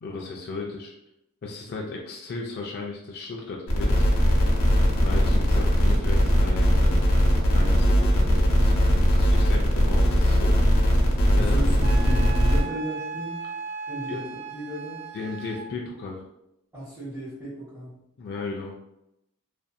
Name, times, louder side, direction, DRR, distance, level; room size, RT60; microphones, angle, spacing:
voice 1, 0.0-0.9 1.4-4.0 5.0-7.0 7.5-10.6 11.3-11.6 14.1-14.2 15.1-16.2 18.2-18.8, left 3 dB, 45° left, -1 dB, 0.3 m, -35 dB
sound 1, 3.7-12.6, equal, 75° left, 0.7 m, -20 dB
voice 2, 11.3-13.4 13.9-15.0 16.7-18.0, equal, 10° right, -13 dB, 1.1 m, -34 dB
Wind instrument woodwind instrument, 11.8-15.7, right 4 dB, 50° right, 0.3 m, -37 dB
2.5 x 2.5 x 2.2 m, 0.85 s
head